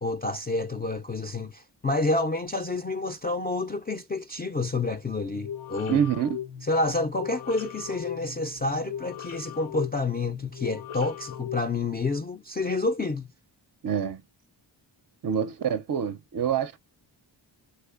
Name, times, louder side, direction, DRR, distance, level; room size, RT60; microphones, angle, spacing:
voice 1, 0.0-6.0 6.7-13.3, left 2 dB, 20° left, 0.3 m, -29 dB
sound 1, 5.4-12.2, left 9 dB, 90° left, 0.7 m, -39 dB
voice 2, 5.9-6.4 13.8-14.2 15.2-16.8, right 8 dB, 45° right, 0.4 m, -26 dB
3.3 x 3.2 x 2.4 m
cardioid pair, 70°, 47 cm